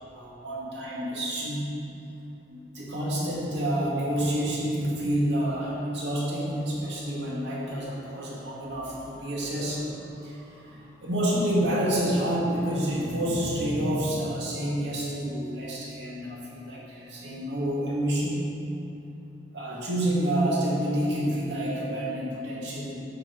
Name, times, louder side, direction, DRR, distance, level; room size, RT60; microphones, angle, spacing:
voice 1, 0.1-1.7 2.5-9.9 10.2-18.5 19.5-23.0, right 1 dB, 85° right, -5 dB, 2.3 m, -28 dB
8.9 x 5.6 x 6.1 m, 2.8 s
head